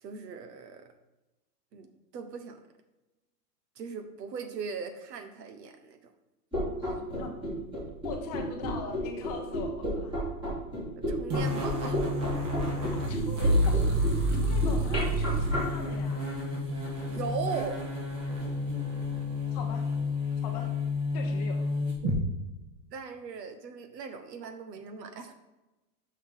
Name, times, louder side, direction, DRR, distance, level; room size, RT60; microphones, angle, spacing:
voice 1, 0.0-0.9 1.7-1.9 2.1-2.6 3.8-6.0 11.0-12.1 17.1-17.8 22.9-25.3, right 5 dB, 85° right, 8 dB, 1.2 m, -38 dB
sound 1, 6.5-15.6, equal, 10° right, 2.2 m, -32 dB
voice 2, 6.8-7.3 8.0-10.1 12.9-16.3 19.5-19.9 20.4-20.7 21.1-21.7, left 5 dB, 25° left, 3 dB, 0.6 m, -41 dB
sound 2, 11.3-22.2, left 1 dB, 50° right, 2.5 m, -29 dB
6.3 x 6.2 x 3.7 m, 1.0 s
supercardioid pair, 160°, 48 cm